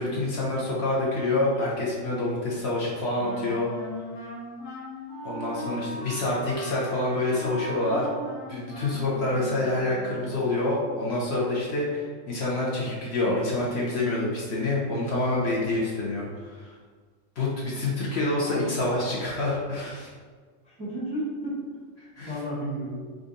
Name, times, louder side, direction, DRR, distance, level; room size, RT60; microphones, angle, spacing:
voice 1, 0.0-3.7 5.2-8.1 8.5-16.7 17.4-20.1 22.0-22.4, left 2 dB, 60° left, -5 dB, 0.9 m, -27 dB
Wind instrument woodwind instrument, 3.2-10.5, left 1 dB, 75° left, 1.2 m, -38 dB
voice 2, 18.4-18.8 20.6-21.6 22.3-22.9, right 1 dB, 5° left, -7 dB, 0.8 m, -33 dB
3.7 x 2.5 x 3.8 m, 1.6 s
omnidirectional pair, 1.3 m